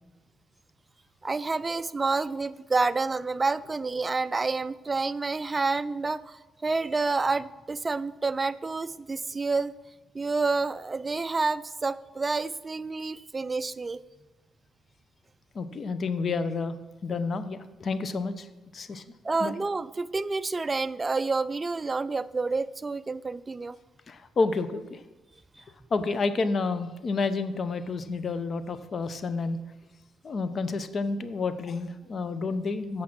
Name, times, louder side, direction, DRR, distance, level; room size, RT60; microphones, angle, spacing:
voice 1, 1.2-9.7 10.1-14.0 19.2-23.8, right 3 dB, 25° right, 15 dB, 0.4 m, -29 dB
voice 2, 15.5-16.8 17.0-18.5 18.7-19.0 19.4-19.5 24.1-25.0 25.9-29.6 30.2-33.0, left 4 dB, 45° left, 12 dB, 0.7 m, -29 dB
8.6 x 7.5 x 5.9 m, 1.1 s
cardioid pair, 90°, 0 cm